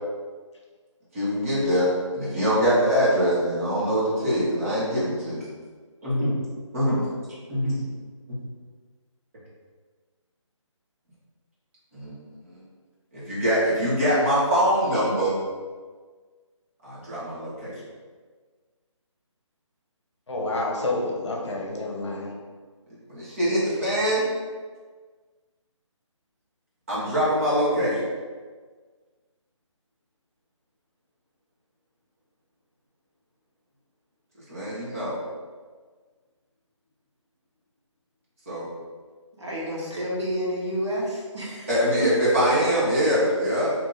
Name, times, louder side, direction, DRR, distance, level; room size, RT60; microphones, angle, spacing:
voice 1, 1.1-5.4 6.0-6.3 6.7-7.0 7.5-7.8 8.3-8.4 11.9-12.2 12.5-12.6 13.1-15.4 16.8-17.7 23.1-24.2 26.9-28.0 34.5-35.2 38.5-38.6 41.7-43.7, equal, 25° right, -9 dB, 1.1 m, -23 dB
voice 2, 20.3-22.3, left 2 dB, 60° left, -1 dB, 0.8 m, -29 dB
voice 3, 39.4-41.7, equal, 60° right, -5 dB, 1.3 m, -29 dB
2.9 x 2.7 x 3.8 m, 1.5 s
hypercardioid pair, 175°, 16 cm